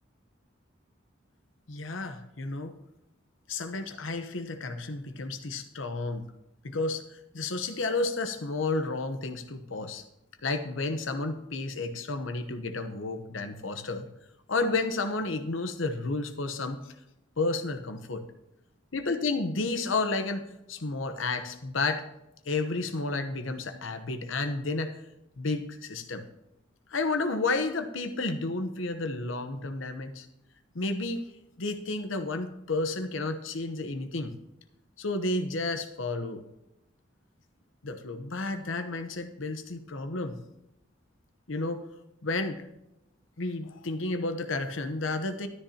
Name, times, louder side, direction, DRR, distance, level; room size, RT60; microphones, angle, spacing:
voice 1, 1.7-2.8 3.5-6.3 6.6-10.0 10.4-14.1 14.5-16.9 17.4-18.2 18.9-22.0 22.4-25.0 25.4-26.2 26.9-30.3 30.7-31.2 31.6-34.4 35.0-36.4 37.8-40.4 41.5-41.8 42.2-42.7 43.4-45.5, left 3 dB, 85° left, 8 dB, 1.0 m, -31 dB
13.0 x 10.0 x 2.9 m, 0.88 s
head